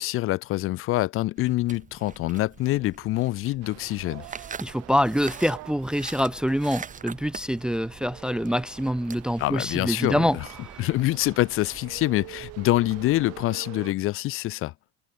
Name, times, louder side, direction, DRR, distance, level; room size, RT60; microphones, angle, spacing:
voice 1, 0.0-4.3 9.4-10.5 10.8-14.7, left 17 dB, 45° left, 0.6 m, -25 dB
sound 1, 1.4-13.5, right 6 dB, 25° right, 6.4 m, -44 dB
sound 2, 3.6-13.9, right 21 dB, 60° right, 1.6 m, -46 dB
voice 2, 4.6-10.4, equal, 5° right, 0.5 m, -25 dB
supercardioid pair, 115°, 29 cm